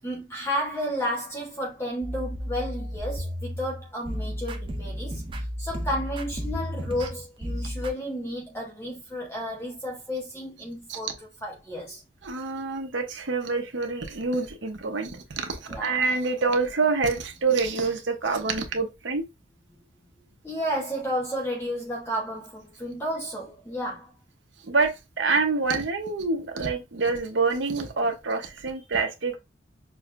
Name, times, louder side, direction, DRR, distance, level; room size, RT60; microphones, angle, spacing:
voice 1, 0.0-11.1 11.4-12.0 15.7-16.0 20.4-24.1, equal, 15° left, 0.7 m, -32 dB
sound 1, 2.0-7.9, equal, 25° right, 0.5 m, -33 dB
voice 2, 12.2-19.2 24.7-29.4, right 4 dB, 75° right, 0.8 m, -26 dB
6.1 x 2.1 x 2.5 m
head